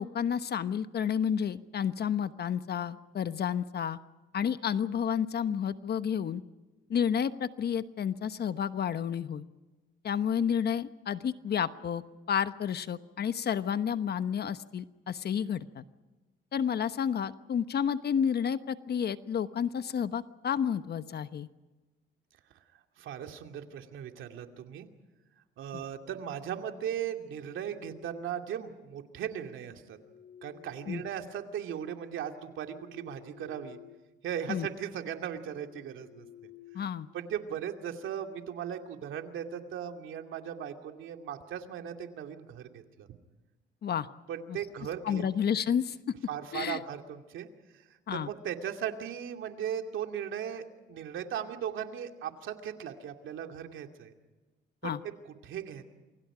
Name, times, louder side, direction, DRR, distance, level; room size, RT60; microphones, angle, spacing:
voice 1, 0.0-4.0 4.3-6.4 6.9-9.4 10.0-12.0 12.3-15.8 16.5-21.5 25.7-25.8 30.9-31.0 34.5-34.7 36.7-37.1 43.8-44.1 44.5-44.6 45.0-46.0 46.5-46.8 48.1-48.3 54.8-55.0, left 8 dB, 55° left, 12 dB, 1.1 m, -30 dB
voice 2, 23.0-24.9 25.6-30.0 30.4-33.8 34.2-36.3 36.8-36.9 37.1-43.1 44.3-45.2 46.3-47.5 47.7-54.1 54.8-54.9 55.2-55.8, right 9 dB, 80° right, 5 dB, 2.6 m, -38 dB
sound 1, 27.2-28.7 29.7-31.8 32.3-34.1 34.4-34.7 35.2-37.5, left 11 dB, 85° left, 2.5 m, -55 dB
28.5 x 24.0 x 5.0 m, 1.2 s
cardioid pair, 90°, 20 cm